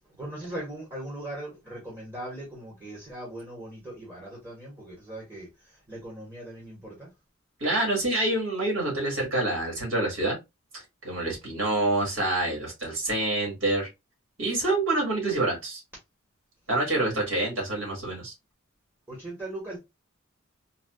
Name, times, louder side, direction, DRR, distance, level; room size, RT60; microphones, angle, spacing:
voice 1, 0.2-7.1 11.2-11.3 17.1-17.2 19.1-19.8, right 1 dB, 15° right, 1.2 m, -39 dB
voice 2, 7.6-10.3 11.0-13.9 14.4-15.8 16.7-18.3, right 2 dB, 65° right, 1.9 m, -27 dB
4.0 x 2.2 x 2.3 m
head